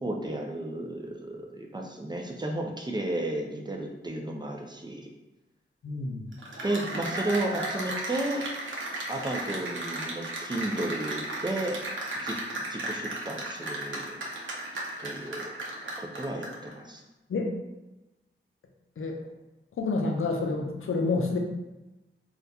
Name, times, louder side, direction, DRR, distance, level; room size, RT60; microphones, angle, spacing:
voice 1, 0.0-5.1 6.6-8.4 9.1-11.8 12.2-12.4 12.7-14.2 15.0-15.5 16.0-17.0, right 1 dB, 20° right, 1 dB, 0.4 m, -33 dB
voice 2, 5.8-6.3 17.3-17.5 19.0-19.2 19.8-21.4, left 3 dB, 75° left, 2 dB, 0.5 m, -28 dB
Cheering / Applause, 6.3-16.7, right 1 dB, 65° right, 0.7 m, -35 dB
3.6 x 2.3 x 2.7 m, 1.0 s
wide cardioid pair, 95°, 21 cm